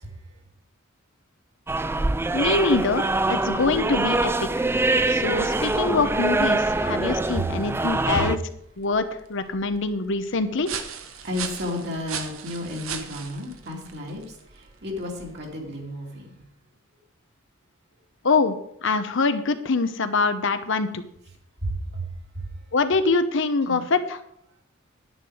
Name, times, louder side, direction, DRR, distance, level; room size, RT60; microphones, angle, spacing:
sound 1, 1.7-8.4, right 2 dB, 10° right, 0.3 m, -24 dB
voice 1, 2.3-4.7 5.1-8.4 8.8-10.7 18.2-18.5 18.8-21.0 22.7-24.2, left 3 dB, 65° left, 10 dB, 0.8 m, -24 dB
sound 2, 8.4-15.7, right 7 dB, 80° right, 1.2 m, -39 dB
voice 2, 11.2-16.5 21.6-22.1 22.4-22.5 23.7-23.8, left 1 dB, 55° right, 0 dB, 2.7 m, -32 dB
10.0 x 9.8 x 4.9 m, 0.73 s
head